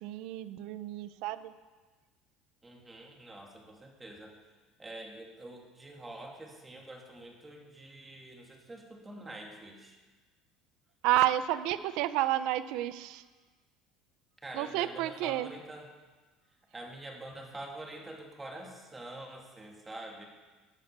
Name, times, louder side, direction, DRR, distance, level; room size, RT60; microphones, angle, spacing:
voice 1, 0.0-1.5 11.0-13.2 14.5-15.5, right 13 dB, 70° right, 14 dB, 0.7 m, -30 dB
voice 2, 2.6-4.4 4.8-10.0 14.4-15.9 16.7-20.3, right 1 dB, 15° right, 1 dB, 2.6 m, -46 dB
15.5 x 9.1 x 6.7 m, 1.3 s
cardioid pair, 120°, 0 cm